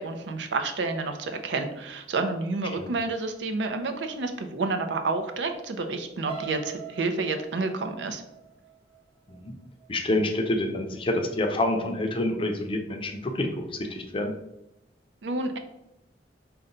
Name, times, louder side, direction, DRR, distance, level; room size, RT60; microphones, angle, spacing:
voice 1, 0.0-8.2 15.2-15.6, right 3 dB, 90° right, 7 dB, 0.5 m, -29 dB
sound 1, 6.3-10.2 10.7-11.0 11.3-11.4, right 8 dB, 35° right, 0.6 m, -43 dB
voice 2, 9.9-14.3, left 1 dB, 30° left, 4 dB, 0.5 m, -27 dB
3.9 x 2.2 x 3.8 m, 0.87 s
head